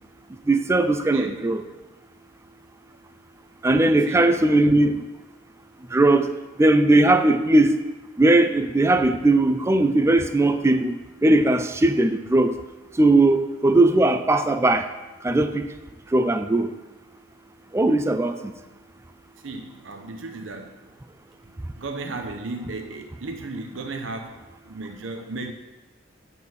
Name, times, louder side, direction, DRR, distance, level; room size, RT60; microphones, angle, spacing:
voice 1, 0.5-1.6 3.6-5.0 5.9-6.3 6.6-7.8 8.2-12.5 13.0-14.9 15.2-15.6 16.1-16.7 17.7-18.5, right 2 dB, 15° right, 9 dB, 0.4 m, -19 dB
voice 2, 1.1-1.4 4.1-4.3 19.4-20.7 21.8-25.5, right 3 dB, 90° right, 5 dB, 0.7 m, -34 dB
9.3 x 4.1 x 7.0 m, 1.1 s
head